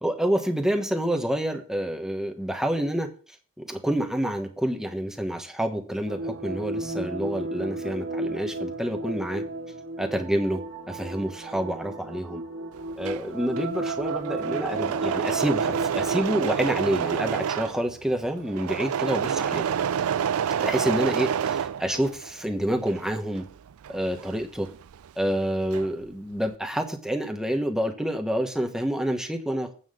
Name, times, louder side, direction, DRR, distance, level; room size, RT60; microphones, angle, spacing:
voice 1, 0.0-3.1 3.6-9.4 10.0-12.4 13.0-19.6 20.6-23.4 23.9-24.7 25.2-29.7, right 1 dB, 5° right, 4 dB, 1.2 m, -28 dB
sound 1, 6.1-16.2, right 2 dB, 65° right, 1.7 m, -33 dB
Engine / Mechanisms, 12.8-22.4 22.7-25.1 25.3-26.1, right 8 dB, 85° right, 0.4 m, -28 dB
8.7 x 5.7 x 6.6 m, 0.41 s
head